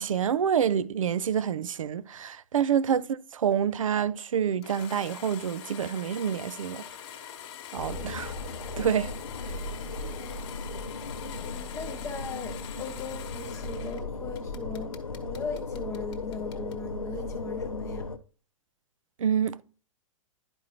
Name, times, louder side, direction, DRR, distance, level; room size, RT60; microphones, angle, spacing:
voice 1, 0.0-6.8 7.7-8.3 8.8-9.1 19.2-19.6, right 8 dB, 70° right, 0.5 m, -27 dB
sound 1, 4.6-14.0 14.3-16.8, left 10 dB, 50° left, 1.2 m, -44 dB
sound 2, 7.7-18.2, left 3 dB, 90° left, 0.6 m, -36 dB
voice 2, 11.2-14.9 15.2-18.1, left 4 dB, 15° left, 0.6 m, -39 dB
11.5 x 4.7 x 2.9 m
figure-of-eight pair, 105°, 17 cm